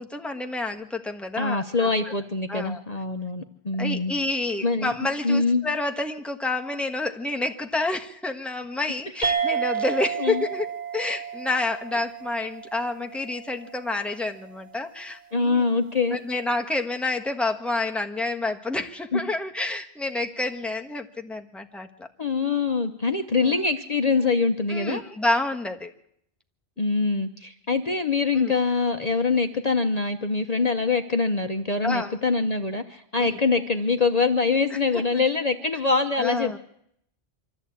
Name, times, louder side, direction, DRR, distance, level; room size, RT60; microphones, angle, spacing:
voice 1, 0.0-2.1 2.5-2.8 3.8-10.7 10.9-15.7 16.1-22.1 23.4-23.5 24.7-25.9 28.3-28.5 31.8-32.2 33.2-33.4 34.7-35.2 36.2-36.6, left 2 dB, ahead, 3 dB, 1.4 m, -29 dB
voice 2, 1.4-4.1 4.6-4.9 5.2-5.6 10.2-10.4 15.3-16.2 19.1-19.2 22.2-25.0 26.8-36.6, left 4 dB, 40° left, 6 dB, 1.0 m, -24 dB
sound 1, 9.2-14.1, right 7 dB, 40° right, 1.2 m, -31 dB
24.5 x 14.0 x 8.6 m, 0.72 s
omnidirectional pair, 1.1 m